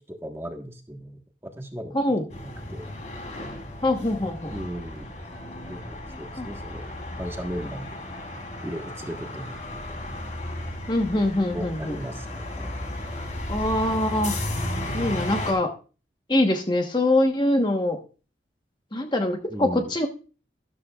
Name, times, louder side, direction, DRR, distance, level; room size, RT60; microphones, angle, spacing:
voice 1, 0.0-2.0 2.4-2.9 4.5-5.1 5.6-6.9 7.2-8.0 8.6-9.8 11.5-12.8 19.5-19.9, equal, 15° right, 3 dB, 1.4 m, -37 dB
voice 2, 1.9-2.3 3.8-4.5 6.1-6.5 10.9-12.0 13.5-14.4 14.9-15.7 16.3-18.0 18.9-20.1, left 1 dB, 25° left, 4 dB, 1.2 m, -24 dB
sound 1, 2.3-15.5, left 1 dB, 40° left, 3.4 m, -34 dB
13.0 x 12.5 x 2.4 m, 0.36 s
head